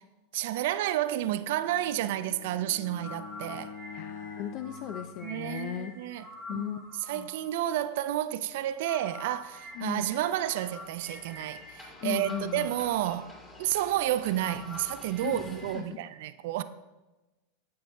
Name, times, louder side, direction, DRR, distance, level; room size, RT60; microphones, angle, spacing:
voice 1, 0.3-3.7 5.2-6.3 6.5-6.7 7.1-16.6, right 13 dB, 65° right, 0.4 m, -31 dB
Bowed string instrument, 1.2-5.8, left 6 dB, 75° left, 1.2 m, -46 dB
sound 1, 2.8-15.8, left 2 dB, 20° left, 2.1 m, -46 dB
voice 2, 3.9-5.9 6.3-6.8 7.1-7.3 9.7-10.1 12.0-12.7 15.2-16.0, left 10 dB, 50° left, 0.4 m, -37 dB
12.5 x 5.6 x 2.2 m
hypercardioid pair, 105°, 0 cm